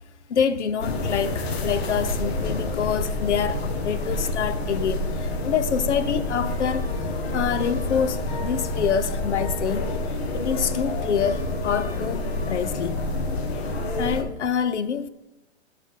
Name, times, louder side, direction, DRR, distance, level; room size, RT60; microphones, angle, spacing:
voice 1, 0.3-9.9 10.3-13.0 14.0-15.1, left 7 dB, 85° left, 0.8 m, -26 dB
sound 1, 0.8-14.2, left 2 dB, 65° left, 1.6 m, -28 dB
12.5 x 5.7 x 3.7 m
hypercardioid pair, 130°, 34 cm